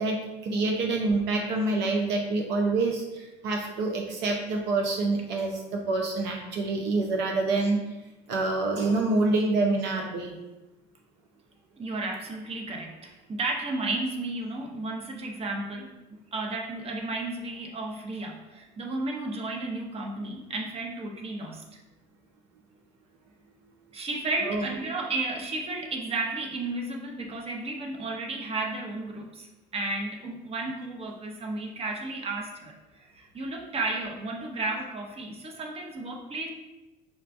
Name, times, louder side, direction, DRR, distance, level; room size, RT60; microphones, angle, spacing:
voice 1, 0.0-7.8 8.3-10.4 24.5-24.6, right 3 dB, 65° right, 1 dB, 0.5 m, -27 dB
voice 2, 11.8-16.0 16.3-21.6 23.9-36.5, right 2 dB, 30° right, 1 dB, 0.7 m, -33 dB
5.8 x 2.2 x 2.5 m, 1.0 s
hypercardioid pair, 70°, 20 cm